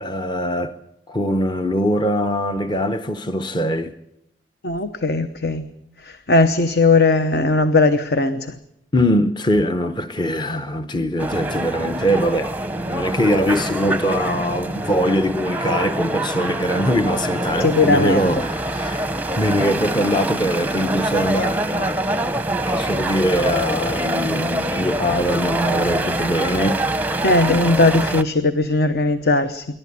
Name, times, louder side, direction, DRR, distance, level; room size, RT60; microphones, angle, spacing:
voice 1, 0.0-0.8 1.1-3.9 8.9-19.1 19.4-22.3 22.7-26.8, equal, 25° left, 0.8 m, -22 dB
voice 2, 4.6-5.7 6.0-8.6 17.6-18.2 27.2-29.6, left 3 dB, 60° left, 1.0 m, -18 dB
sound 1, 11.2-28.2, right 1 dB, 10° right, 0.7 m, -25 dB
27.0 x 12.0 x 9.5 m
head